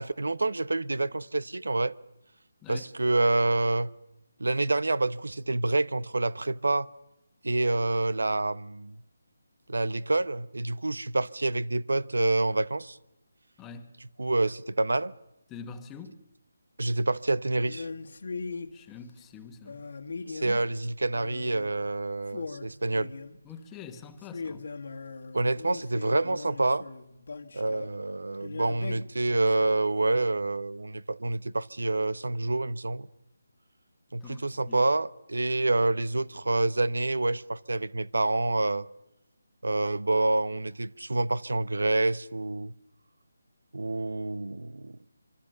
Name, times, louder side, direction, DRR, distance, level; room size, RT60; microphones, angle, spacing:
voice 1, 0.0-1.9 2.7-3.9 4.4-6.9 7.4-9.0 9.7-13.0 14.2-15.1 16.8-17.9 20.3-23.1 25.3-26.9 27.5-33.1 34.1-38.9 39.6-42.7 43.7-45.1, right 2 dB, 90° right, 1.0 m, -27 dB
voice 2, 13.6-14.0 15.5-16.2 18.7-19.8 23.4-24.7 34.2-34.4 34.7-34.8, left 5 dB, 10° left, 1.5 m, -45 dB
sound 1, 17.7-18.7 19.6-20.7 21.1-21.7 22.0-22.1 22.3-23.5 24.2-27.9 28.4-29.7, left 4 dB, 65° left, 1.7 m, -40 dB
25.5 x 25.0 x 6.8 m
figure-of-eight pair, 165°, 0 cm